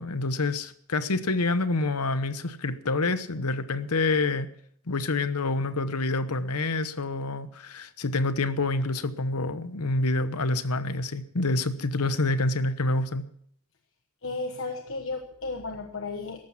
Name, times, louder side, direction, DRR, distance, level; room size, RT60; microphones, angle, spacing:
voice 1, 0.0-4.5 4.9-13.2, left 2 dB, 90° left, 12 dB, 1.0 m, -27 dB
voice 2, 14.2-16.4, left 3 dB, 60° left, 4 dB, 1.2 m, -34 dB
14.0 x 12.0 x 5.9 m, 0.65 s
head